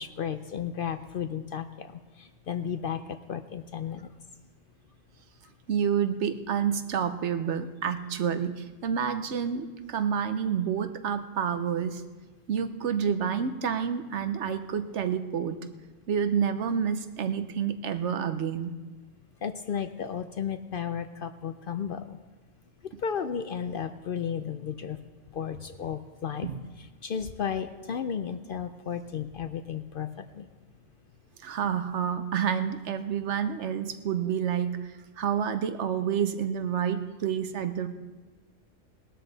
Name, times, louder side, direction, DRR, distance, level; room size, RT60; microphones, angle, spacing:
voice 1, 0.0-4.1 19.4-22.2 22.8-25.0 25.3-26.5 26.8-30.5, left 7 dB, 60° left, 10 dB, 0.6 m, -34 dB
voice 2, 5.7-12.0 12.5-15.6 16.1-18.8 26.4-26.6 31.4-37.9, right 7 dB, 65° right, 10 dB, 1.0 m, -29 dB
19.0 x 12.5 x 4.0 m, 1.3 s
omnidirectional pair, 1.3 m